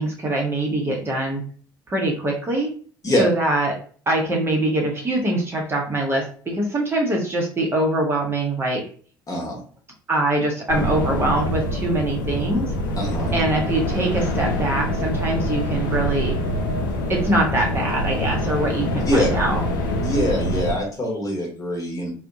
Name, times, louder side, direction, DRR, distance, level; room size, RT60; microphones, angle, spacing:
voice 1, 0.0-1.4 1.9-2.7 3.2-3.8 4.1-8.8 10.1-12.7 13.3-16.4 17.1-19.6, right 1 dB, 20° right, -1 dB, 0.7 m, -23 dB
voice 2, 9.3-9.6 13.0-13.3 19.1-19.3 20.0-22.1, left 1 dB, 30° left, -1 dB, 1.0 m, -23 dB
sound 1, 10.7-20.7, equal, 70° left, 0.5 m, -25 dB
2.6 x 2.1 x 2.5 m, 0.43 s
figure-of-eight pair, 60°, 11 cm